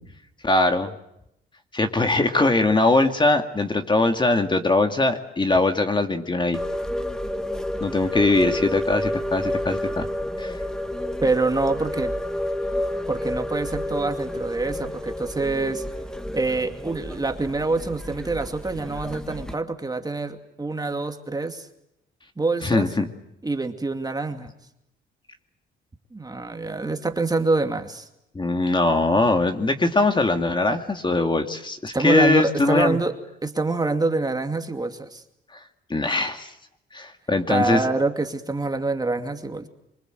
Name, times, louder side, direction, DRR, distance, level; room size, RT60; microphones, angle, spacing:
voice 1, 0.4-0.9 1.7-6.6 7.8-10.1 10.4-10.6 22.6-23.1 28.3-33.0 35.9-36.5 36.9-37.8, left 2 dB, 25° left, 6 dB, 2.3 m, -21 dB
sound 1, 6.5-19.5, left 1 dB, 5° left, 1.8 m, -30 dB
voice 2, 11.2-12.1 13.1-15.8 16.3-21.7 22.4-22.9 23.4-24.5 26.1-28.1 31.9-33.2 33.4-35.2 37.5-39.7, right 3 dB, 20° right, 6 dB, 2.5 m, -25 dB
26.0 x 23.5 x 7.9 m, 0.81 s
cardioid pair, 90°, 20 cm